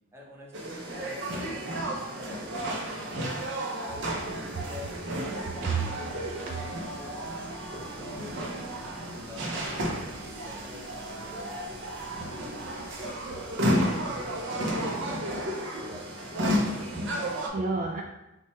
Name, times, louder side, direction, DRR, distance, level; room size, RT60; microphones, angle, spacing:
voice 1, 0.1-7.4 7.7-8.4 8.7-11.7 13.7-15.5 15.8-16.2, left 1 dB, 15° right, -2 dB, 0.8 m, -46 dB
sound 1, 0.5-17.5, equal, 65° right, 0.7 m, -32 dB
sound 2, 4.0-14.4, left 1 dB, 50° left, 0.7 m, -52 dB
voice 2, 13.3-13.9 15.7-15.8 16.7-18.0, right 3 dB, 45° right, 1 dB, 0.3 m, -34 dB
5.7 x 2.3 x 3.2 m, 0.95 s
head